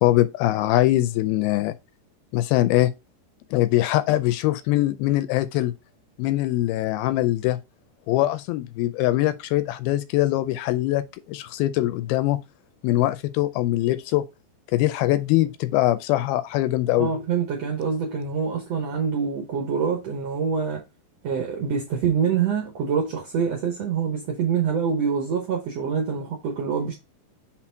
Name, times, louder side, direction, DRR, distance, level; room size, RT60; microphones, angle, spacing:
voice 1, 0.0-1.7 2.3-2.9 3.5-5.7 6.2-7.6 8.1-12.4 12.8-14.3 14.7-17.1, left 15 dB, 80° left, 2.3 m, -22 dB
voice 2, 17.0-20.8 21.2-27.0, right 6 dB, 70° right, 1.6 m, -25 dB
6.0 x 4.1 x 4.5 m
omnidirectional pair, 4.5 m